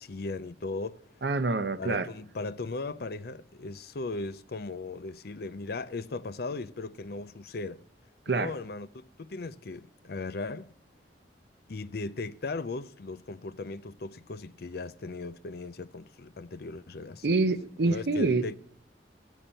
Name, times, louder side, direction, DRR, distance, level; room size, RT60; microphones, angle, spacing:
voice 1, 0.0-1.0 1.8-7.8 8.3-10.7 11.7-17.4 17.8-18.6, left 3 dB, 60° left, 0.6 m, -37 dB
voice 2, 1.2-2.1 8.3-8.5 17.2-18.4, right 3 dB, 65° right, 0.8 m, -26 dB
16.0 x 5.5 x 8.8 m
head